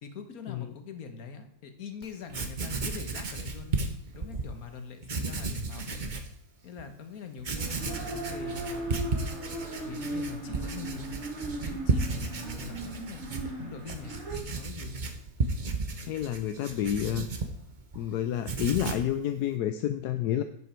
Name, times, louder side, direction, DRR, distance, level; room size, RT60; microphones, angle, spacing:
voice 1, 0.0-3.8 4.1-6.1 6.6-9.0 9.8-11.1 11.6-14.2 14.5-15.0, left 5 dB, 65° left, 7 dB, 1.7 m, -43 dB
Writing, 2.0-2.1 2.3-4.5 5.0-6.3 6.8-6.9 7.4-18.0 18.3-19.1, right 3 dB, 35° right, 0.9 m, -34 dB
sound 1, 7.5-14.4, right 2 dB, 55° right, 2.2 m, -37 dB
voice 2, 16.1-17.3 17.9-20.4, left 10 dB, 80° left, 9 dB, 1.2 m, -29 dB
11.0 x 8.1 x 4.5 m, 0.74 s
omnidirectional pair, 1.7 m